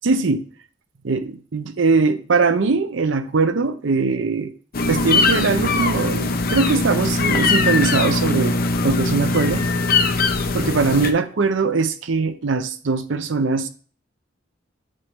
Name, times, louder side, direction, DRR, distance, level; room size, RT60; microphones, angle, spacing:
voice 1, 0.0-0.4 1.0-4.5 4.9-8.6 8.8-9.6 10.5-13.7, right 4 dB, 70° right, 11 dB, 0.6 m, -21 dB
sound 1, 4.7-11.1, left 3 dB, 50° left, 0.7 m, -20 dB
8.7 x 3.6 x 4.0 m, 0.41 s
head